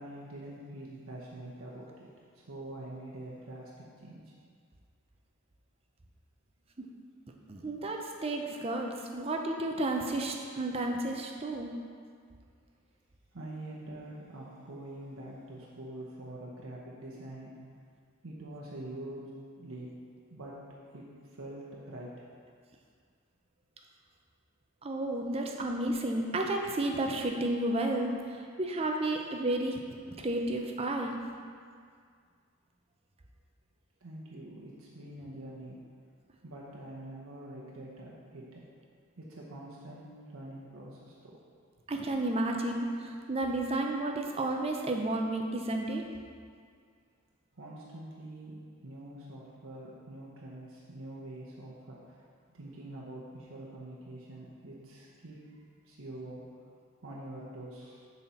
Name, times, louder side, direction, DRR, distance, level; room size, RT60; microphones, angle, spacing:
voice 1, 0.0-2.1 2.3-3.7 4.0-4.2 13.3-17.5 18.2-19.9 20.3-20.6 20.9-21.0 21.4-22.3 34.0-35.8 36.4-38.6 39.2-41.4 47.5-56.4 57.0-58.1, right 1 dB, 75° right, -4 dB, 0.9 m, -45 dB
voice 2, 7.5-11.7 24.8-29.8 30.2-31.2 41.9-46.1, right 2 dB, 25° right, 2 dB, 0.5 m, -32 dB
7.1 x 4.2 x 5.7 m, 2.1 s
head